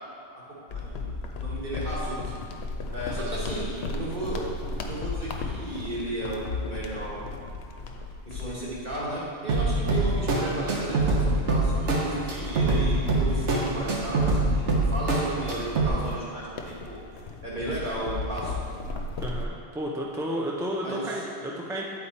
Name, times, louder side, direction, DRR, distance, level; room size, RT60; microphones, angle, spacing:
voice 1, 0.3-1.1 1.3-2.3 2.9-4.5 4.8-7.2 8.2-17.0 17.4-18.6 20.8-21.2, right 1 dB, 45° right, -7 dB, 1.7 m, -34 dB
sound 1, 0.7-10.6 11.0-11.2 11.8-19.5, left 3 dB, 70° left, 0.8 m, -36 dB
voice 2, 3.1-3.5 19.2-21.8, equal, 5° right, -2 dB, 0.3 m, -32 dB
sound 2, 9.5-15.9, right 2 dB, 90° right, 1.2 m, -25 dB
8.2 x 4.2 x 4.2 m, 2.4 s
omnidirectional pair, 1.2 m